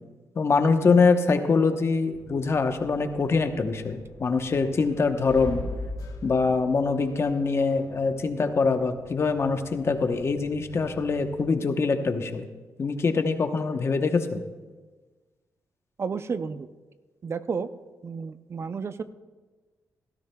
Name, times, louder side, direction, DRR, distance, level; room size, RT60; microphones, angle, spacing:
voice 1, 0.4-5.6 6.2-12.4 12.8-14.4, left 4 dB, 40° left, 7 dB, 0.9 m, -24 dB
sound 1, 2.1-11.4, left 2 dB, 60° left, 1.2 m, -42 dB
voice 2, 16.0-16.7 17.2-17.7 18.0-19.0, right 5 dB, 45° right, 12 dB, 0.5 m, -31 dB
17.0 x 13.0 x 2.3 m, 1.3 s
cardioid pair, 100°, 6 cm